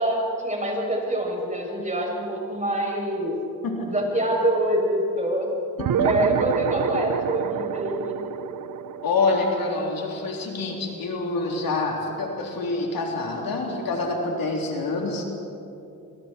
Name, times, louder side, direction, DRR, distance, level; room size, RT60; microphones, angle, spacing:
voice 1, 0.0-3.4 3.8-5.5 6.0-8.2, right 1 dB, 20° right, -1 dB, 7.7 m, -25 dB
sound 1, 5.8-10.6, right 8 dB, 70° right, 0.9 m, -27 dB
voice 2, 9.0-15.2, left 3 dB, 85° left, 0 dB, 3.6 m, -26 dB
27.5 x 25.5 x 4.6 m, 2.7 s
cardioid pair, 60°, 34 cm